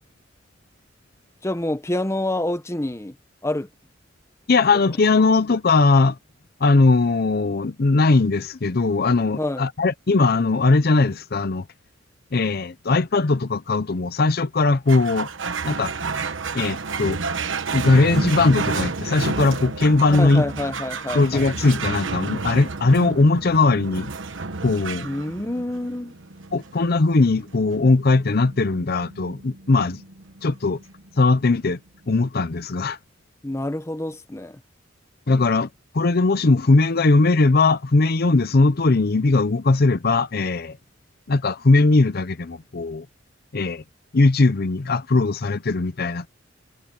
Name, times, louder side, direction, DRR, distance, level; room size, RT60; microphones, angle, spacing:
voice 1, 1.4-3.1 3.4-3.7 9.4-9.7 20.1-21.5 25.0-26.1 33.4-34.6, left 1 dB, 15° left, 0.9 m, -27 dB
voice 2, 4.5-6.2 6.6-11.6 12.3-15.3 15.6-15.9 16.5-17.2 17.7-20.4 21.1-24.1 24.6-25.1 26.5-30.0 30.4-30.8 31.2-31.8 32.1-33.0 35.3-35.7 35.9-40.8 41.3-43.0 43.5-43.8 44.1-46.3, left 3 dB, 55° left, 0.7 m, -19 dB
sound 1, 14.9-31.6, right 4 dB, 80° right, 1.2 m, -31 dB
head